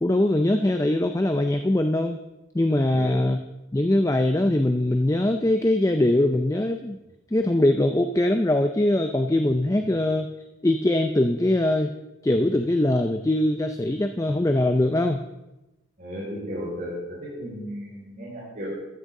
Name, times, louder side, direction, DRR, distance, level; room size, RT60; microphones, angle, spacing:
voice 1, 0.0-2.2 2.5-3.4 3.7-7.0 7.3-10.3 10.6-11.9 12.2-15.2, left 1 dB, 15° left, 7 dB, 0.4 m, -22 dB
voice 2, 2.9-3.2 16.0-18.7, equal, 40° right, -9 dB, 4.7 m, -35 dB
13.5 x 13.5 x 3.7 m, 1.0 s
head